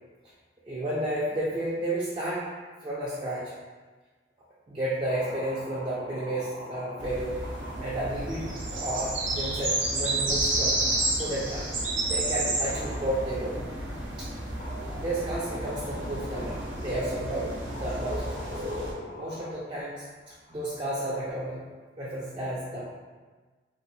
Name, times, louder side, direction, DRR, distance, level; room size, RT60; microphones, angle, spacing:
voice 1, 0.7-2.4 2.8-3.5 4.7-7.4 7.8-11.7 12.1-13.8 14.2-14.3 14.9-18.5 19.2-21.6 22.0-23.0, right 1 dB, 25° right, -7 dB, 0.3 m, -32 dB
sound 1, 4.8-11.9 12.3-12.4 12.7-13.8 14.6-17.1 17.6-21.3, left 1 dB, 50° left, 0.5 m, -45 dB
sound 2, 7.0-18.9, right 2 dB, 80° right, 0.6 m, -31 dB
2.7 x 2.3 x 2.6 m, 1.3 s
head